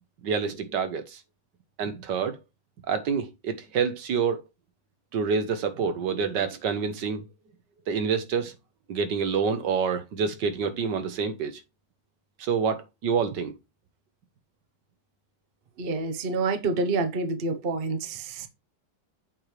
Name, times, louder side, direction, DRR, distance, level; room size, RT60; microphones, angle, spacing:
voice 1, 0.2-1.2 1.8-2.4 2.9-4.4 5.1-7.2 7.9-8.5 8.9-11.6 12.4-13.5 15.8-16.0, right 6 dB, 75° right, 1.6 m, -27 dB
voice 2, 15.8-18.5, right 3 dB, 40° right, 0.9 m, -28 dB
7.8 x 3.3 x 4.5 m
omnidirectional pair, 1.9 m